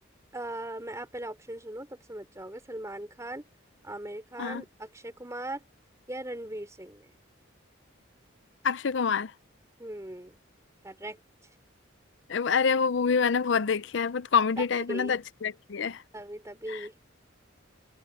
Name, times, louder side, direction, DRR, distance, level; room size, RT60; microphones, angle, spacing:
voice 1, 0.3-3.4 3.8-5.6 6.1-7.1 9.8-10.4 10.8-11.2 14.6-15.1 16.1-16.9, right 1 dB, 15° right, 3.7 m, -39 dB
voice 2, 8.6-9.3 12.3-16.0 16.7-16.9, left 6 dB, 60° left, 0.5 m, -26 dB
head